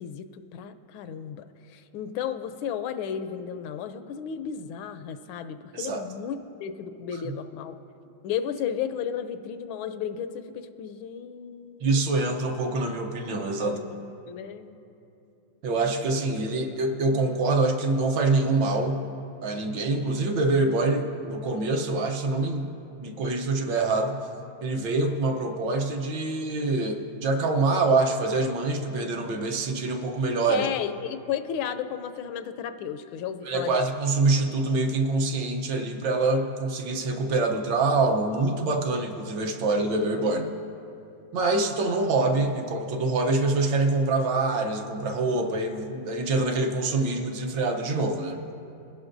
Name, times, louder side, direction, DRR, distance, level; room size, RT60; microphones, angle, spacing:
voice 1, 0.0-7.8 8.2-12.4 13.6-13.9 14.3-14.7 30.4-33.8, left 8 dB, 90° left, 10 dB, 1.4 m, -34 dB
voice 2, 11.8-13.8 15.6-19.0 19.4-22.7 23.0-24.3 24.6-30.7 33.5-40.5 41.3-48.4, right 3 dB, 65° right, 3 dB, 1.5 m, -25 dB
22.0 x 11.0 x 2.6 m, 2.7 s
omnidirectional pair, 2.2 m